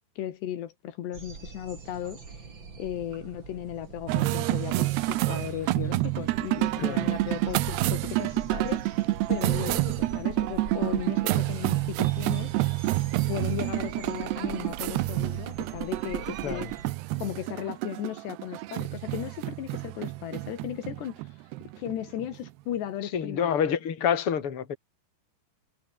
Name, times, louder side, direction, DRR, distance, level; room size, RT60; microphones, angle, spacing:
voice 1, 0.2-2.4 2.8-9.0 9.3-12.5 13.3-16.7 17.2-21.2 21.8-23.7, left 11 dB, 80° left, 4.0 m, -36 dB
sound 1, 1.1-16.9, right 4 dB, 30° right, 3.4 m, -43 dB
sound 2, 4.1-22.7, right 18 dB, 80° right, 2.8 m, -28 dB
voice 2, 6.8-7.1 16.4-16.7 23.1-24.8, left 8 dB, 35° left, 3.4 m, -27 dB
omnidirectional pair, 4.9 m